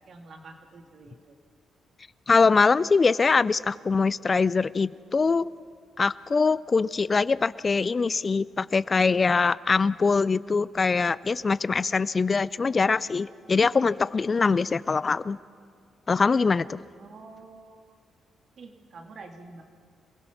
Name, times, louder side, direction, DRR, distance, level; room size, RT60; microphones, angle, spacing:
voice 1, 0.1-1.4 17.0-18.0 18.6-19.6, right 3 dB, 60° right, 4 dB, 2.4 m, -47 dB
voice 2, 2.3-5.5 6.0-15.4 16.1-16.8, left 4 dB, 40° left, 19 dB, 0.4 m, -23 dB
27.0 x 16.5 x 5.9 m, 2.2 s
supercardioid pair, 55°, 0 cm